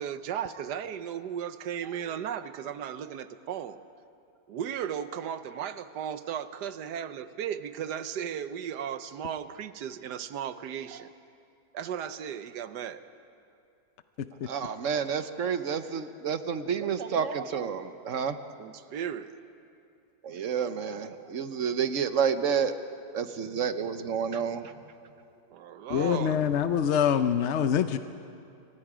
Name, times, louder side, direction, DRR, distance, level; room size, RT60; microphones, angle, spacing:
voice 1, 0.0-3.8 4.5-11.1 11.7-13.0 18.6-19.6 25.5-26.5, right 9 dB, 75° right, 12 dB, 1.4 m, -36 dB
voice 2, 14.4-18.4 20.2-22.8 23.1-24.7, right 7 dB, 55° right, 10 dB, 1.1 m, -29 dB
voice 3, 25.9-28.0, left 8 dB, 60° left, 9 dB, 0.7 m, -25 dB
29.5 x 24.0 x 5.0 m, 2.6 s
omnidirectional pair, 1.9 m